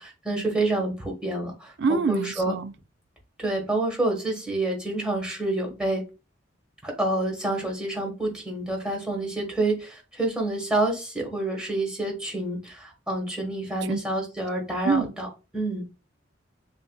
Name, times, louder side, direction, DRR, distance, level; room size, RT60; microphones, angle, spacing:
voice 1, 0.0-2.5 3.4-6.0 6.8-15.8, right 2 dB, 5° right, 1.4 m, -28 dB
voice 2, 1.8-2.7 13.8-14.0 14.8-15.1, right 4 dB, 65° right, 0.4 m, -25 dB
6.3 x 2.5 x 2.3 m
head